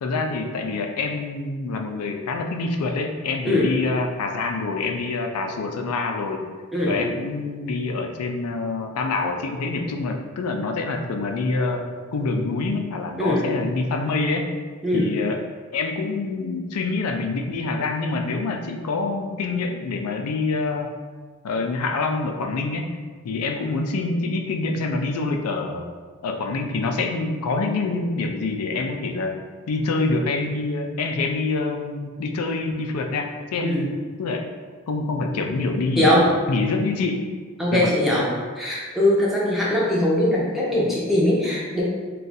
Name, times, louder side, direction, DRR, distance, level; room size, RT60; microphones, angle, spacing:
voice 1, 0.0-6.4 6.9-14.5 14.9-15.4 15.7-20.9 21.4-22.9 23.2-25.9 26.2-29.3 29.7-33.9 34.2-34.5 34.9-37.2 37.7-37.9, left 3 dB, 90° left, 4 dB, 0.4 m, -26 dB
voice 2, 36.0-36.3 37.6-38.3 38.6-41.8, left 1 dB, ahead, -6 dB, 0.5 m, -21 dB
2.6 x 2.3 x 3.9 m, 1.5 s
head